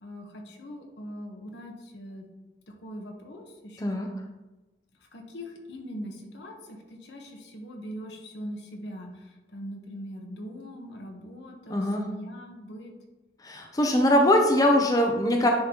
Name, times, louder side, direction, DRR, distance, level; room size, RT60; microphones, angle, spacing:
voice 1, 0.0-2.3 2.8-4.1 5.1-12.9, equal, 85° left, 2 dB, 1.1 m, -41 dB
voice 2, 11.7-12.1 13.4-15.5, left 1 dB, 20° left, 2 dB, 0.5 m, -22 dB
9.9 x 3.9 x 2.9 m, 1.1 s
head